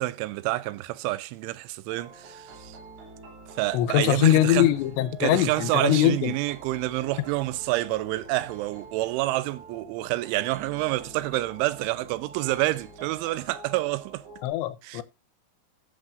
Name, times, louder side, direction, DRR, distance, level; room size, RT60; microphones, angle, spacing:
voice 1, 0.0-2.8 3.6-4.7 5.2-14.2 14.8-15.0, right 18 dB, 85° right, 3.1 m, -28 dB
sound 1, 1.9-14.5, right 2 dB, 60° right, 4.5 m, -46 dB
voice 2, 3.7-6.3 14.4-15.0, left 14 dB, 80° left, 2.9 m, -22 dB
15.5 x 7.3 x 2.5 m
omnidirectional pair, 5.4 m